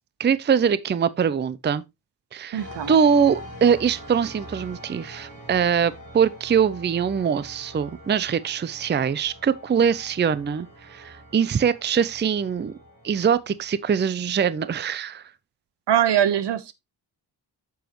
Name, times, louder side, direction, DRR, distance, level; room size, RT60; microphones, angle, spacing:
voice 1, 0.2-1.8 2.3-12.7 13.0-15.2, right 7 dB, 25° right, 0.5 m, -23 dB
voice 2, 2.5-2.9 15.9-16.7, right 10 dB, 80° right, 1.0 m, -22 dB
sound 1, 2.6-13.7, equal, 50° right, 5.1 m, -44 dB
9.1 x 7.1 x 3.0 m
wide cardioid pair, 110°, 41 cm